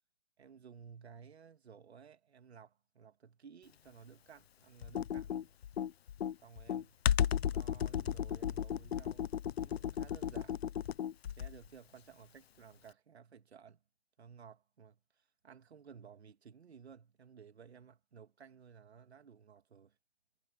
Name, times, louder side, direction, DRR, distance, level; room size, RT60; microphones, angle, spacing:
voice 1, 0.4-5.6 6.4-7.0 7.5-9.3 9.6-10.6 11.4-13.8 14.2-20.0, right 7 dB, 75° right, 2.6 m, -56 dB
Computer keyboard, 4.8-11.7, left 9 dB, 65° left, 0.6 m, -34 dB
hypercardioid pair, 170°, 33 cm